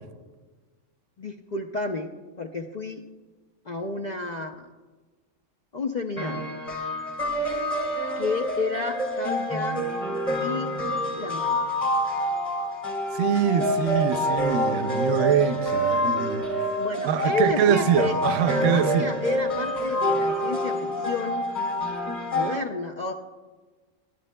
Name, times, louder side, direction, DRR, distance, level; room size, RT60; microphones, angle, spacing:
voice 1, 1.2-3.1 3.7-4.7 5.7-6.5 8.2-9.9 10.4-10.7 11.2-11.8 16.8-21.4 22.3-23.1, left 3 dB, 60° left, 0.4 m, -31 dB
sound 1, 6.2-22.6, equal, 25° left, 1.7 m, -27 dB
voice 2, 13.1-16.7 17.0-19.1, right 8 dB, 75° right, 0.9 m, -24 dB
22.0 x 9.9 x 2.2 m
omnidirectional pair, 1.3 m